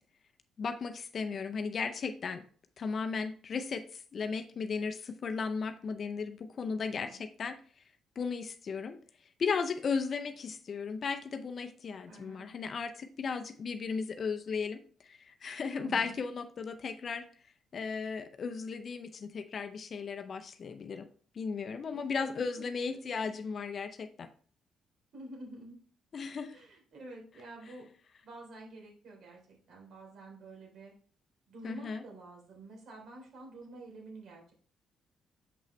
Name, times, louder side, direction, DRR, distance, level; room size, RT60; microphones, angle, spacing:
voice 1, 0.6-2.5 2.8-7.6 8.2-9.0 9.4-17.3 17.7-21.1 21.3-24.3 26.1-26.6 31.6-32.0, left 5 dB, 50° left, 8 dB, 0.6 m, -36 dB
voice 2, 6.8-7.2 12.1-12.5 15.8-16.2 21.9-23.3 25.1-25.8 26.5-27.9 28.2-30.9 31.5-34.5, right 2 dB, 65° right, 0 dB, 3.4 m, -49 dB
7.1 x 5.6 x 3.2 m, 0.43 s
cardioid pair, 90°, 0 cm